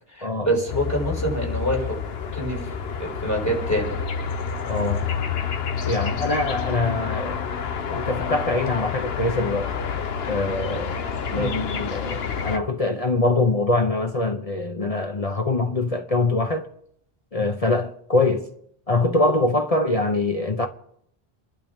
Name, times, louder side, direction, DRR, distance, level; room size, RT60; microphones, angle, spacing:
voice 1, 0.1-1.9 2.3-2.7 3.0-4.0 11.3-11.5, right 1 dB, 15° left, 5.7 m, -26 dB
sound 1, 0.7-12.6, left 6 dB, 75° left, 1.2 m, -28 dB
voice 2, 4.7-5.1 5.8-7.4 7.9-9.7 10.3-11.0 11.3-16.7 17.3-18.5 18.9-20.7, left 2 dB, 40° left, 0.9 m, -23 dB
30.0 x 11.5 x 3.6 m
omnidirectional pair, 1.0 m